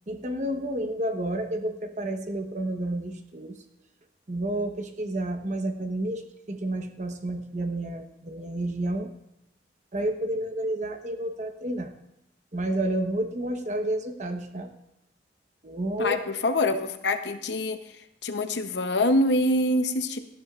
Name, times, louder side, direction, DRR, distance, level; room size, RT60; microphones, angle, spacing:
voice 1, 0.1-3.6 4.3-9.1 9.9-11.9 12.5-14.7 15.6-16.2, right 1 dB, 40° right, 6 dB, 1.0 m, -30 dB
voice 2, 16.0-17.8 18.2-20.2, left 1 dB, 65° left, 8 dB, 0.8 m, -25 dB
17.5 x 12.0 x 2.4 m, 0.84 s
head